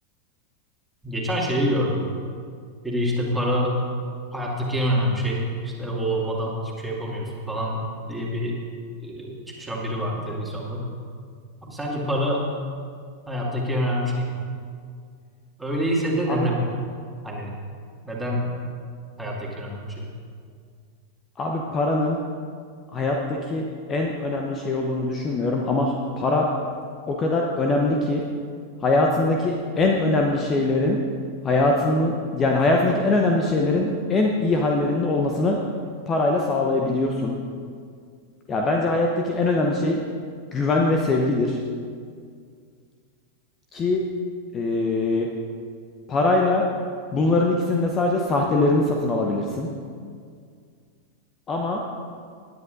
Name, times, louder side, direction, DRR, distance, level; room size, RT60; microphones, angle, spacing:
voice 1, 1.0-2.1 2.8-3.7 4.3-7.8 8.1-8.5 9.0-10.8 11.6-12.4 13.3-14.4 15.6-16.6 17.2-17.5 18.0-18.4 19.2-20.1, equal, 5° right, -4 dB, 2.3 m, -26 dB
voice 2, 21.4-22.2 22.9-26.5 27.1-28.2 28.8-31.0 31.4-35.6 36.1-37.3 38.5-40.0 40.5-41.6 43.7-44.1 44.5-45.3 46.1-46.7 47.1-49.7 51.5-51.8, left 2 dB, 25° left, 1 dB, 0.9 m, -22 dB
18.5 x 9.8 x 2.6 m, 2.2 s
figure-of-eight pair, 90°, 0 cm